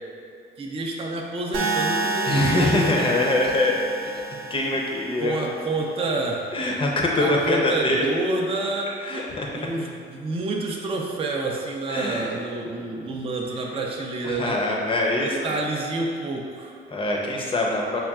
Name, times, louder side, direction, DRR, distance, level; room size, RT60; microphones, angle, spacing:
voice 1, 0.6-2.9 5.2-6.4 7.2-8.9 9.5-14.6 15.2-16.8, right 2 dB, 30° right, 0 dB, 0.4 m, -28 dB
sound 1, 1.5-5.6, right 3 dB, 85° right, 0.6 m, -29 dB
voice 2, 2.2-3.8 4.5-5.5 6.5-8.0 9.0-9.5 11.9-12.2 14.2-15.6 16.9-18.0, left 2 dB, 25° left, -1 dB, 0.6 m, -23 dB
5.7 x 2.2 x 2.3 m, 2.4 s
cardioid pair, 90°, 20 cm